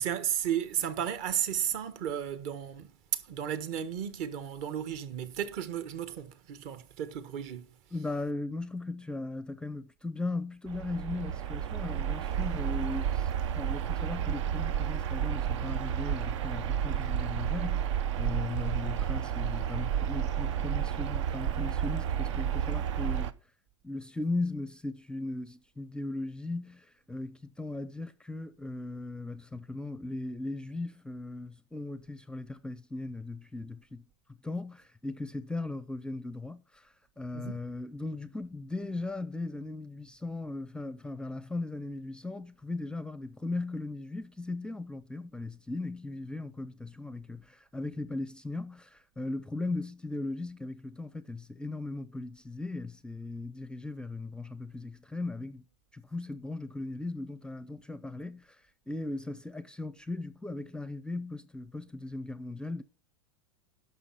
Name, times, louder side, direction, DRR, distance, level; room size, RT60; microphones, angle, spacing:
voice 1, 0.0-7.7 37.3-37.6, right 9 dB, 55° right, 1.4 m, -34 dB
voice 2, 7.9-23.3 23.8-34.0 34.4-55.6 55.9-62.8, left 2 dB, 5° left, 0.5 m, -38 dB
sound 1, 10.7-23.3, right 9 dB, 75° right, 0.8 m, -31 dB
11.0 x 6.1 x 5.7 m
hypercardioid pair, 120°, 15 cm